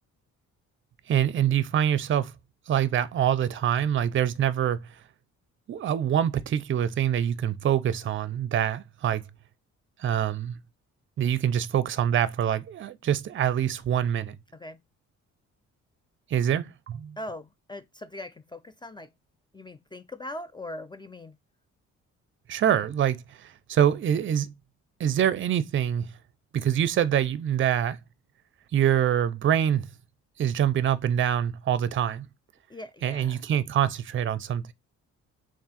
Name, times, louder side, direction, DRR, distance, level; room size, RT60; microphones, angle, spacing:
voice 1, 1.1-2.3 2.7-4.9 5.7-9.2 10.0-10.6 11.2-14.4 16.3-17.2 22.5-24.5 25.0-26.1 26.5-28.0 28.7-29.9 30.4-32.3 33.0-34.6, right 9 dB, 40° right, 0.5 m, -25 dB
voice 2, 17.2-19.1 19.5-21.3 32.7-33.4, left 1 dB, 15° left, 0.4 m, -40 dB
3.5 x 2.5 x 4.1 m
cardioid pair, 90°, 30 cm